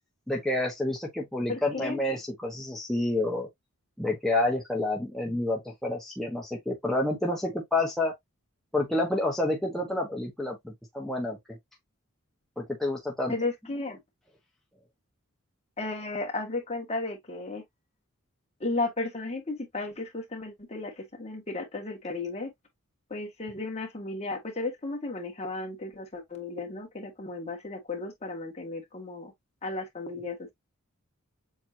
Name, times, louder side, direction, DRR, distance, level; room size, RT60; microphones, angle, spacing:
voice 1, 0.3-3.5 4.0-8.1 8.7-11.6 12.6-13.3, left 2 dB, ahead, 1.0 m, -29 dB
voice 2, 1.5-2.0 13.3-14.0 15.8-17.6 18.6-22.5 23.1-29.3 29.6-30.5, left 2 dB, 30° left, 1.6 m, -34 dB
7.2 x 2.5 x 2.7 m
head